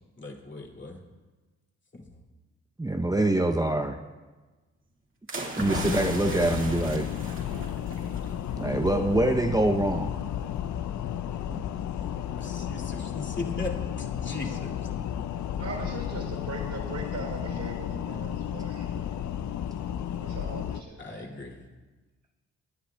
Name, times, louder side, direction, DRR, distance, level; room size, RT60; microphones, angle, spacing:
voice 1, 0.2-1.0 1.9-2.1 12.0-14.7 21.0-21.6, left 2 dB, 35° left, 0 dB, 2.5 m, -38 dB
voice 2, 2.8-4.0 5.5-7.0 8.6-10.1 11.5-11.6, right 1 dB, 10° right, 3 dB, 0.7 m, -25 dB
sound 1, 5.3-8.3 8.6-8.9, right 2 dB, 40° right, 2.1 m, -37 dB
sound 2, 5.6-20.8, left 9 dB, 65° left, 0.6 m, -33 dB
voice 3, 15.6-19.0 20.2-21.3, right 3 dB, 65° right, -1 dB, 3.9 m, -39 dB
19.5 x 9.9 x 2.3 m, 1.2 s
supercardioid pair, 50°, 32 cm